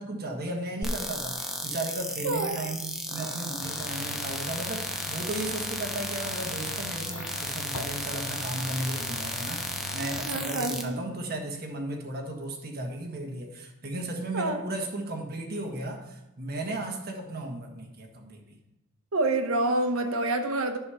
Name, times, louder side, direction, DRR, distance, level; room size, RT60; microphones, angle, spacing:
voice 1, 0.0-18.6, right 1 dB, 45° right, 2 dB, 1.4 m, -35 dB
sound 1, 0.8-10.8, equal, ahead, 0.8 m, -34 dB
voice 2, 2.2-2.6 10.2-11.0 14.3-14.6 19.1-20.8, right 2 dB, 70° right, 6 dB, 1.1 m, -27 dB
sound 2, 3.6-10.3, left 5 dB, 90° left, 0.9 m, -41 dB
10.5 x 5.0 x 5.7 m, 0.97 s
head